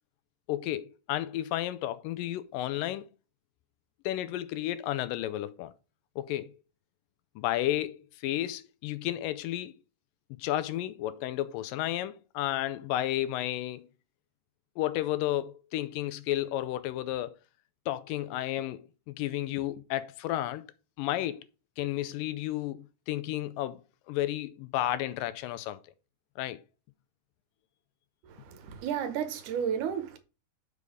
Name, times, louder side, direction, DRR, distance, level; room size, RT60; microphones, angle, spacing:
voice 1, 0.5-3.1 4.0-5.7 6.2-6.5 7.4-9.7 10.3-13.9 14.8-17.4 17.9-20.6 21.0-21.5 21.8-23.8 24.1-25.8 26.4-26.6, left 14 dB, 90° left, 2.3 m, -32 dB
voice 2, 28.2-30.2, right 8 dB, 75° right, 2.3 m, -33 dB
6.6 x 5.3 x 5.0 m
omnidirectional pair, 3.8 m